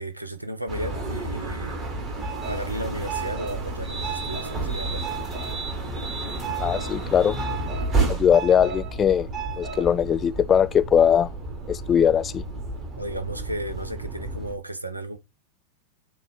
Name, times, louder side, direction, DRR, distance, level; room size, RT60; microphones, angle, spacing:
voice 1, 0.0-1.7 2.5-5.1 13.0-15.2, right 1 dB, 85° right, 0.8 m, -33 dB
sound 1, 0.7-14.6, right 3 dB, 25° right, 1.8 m, -31 dB
voice 2, 6.6-7.4 8.1-9.3 9.6-11.3 11.7-12.4, left 8 dB, 25° left, 0.4 m, -20 dB
7.1 x 2.8 x 5.3 m
figure-of-eight pair, 90°, 0 cm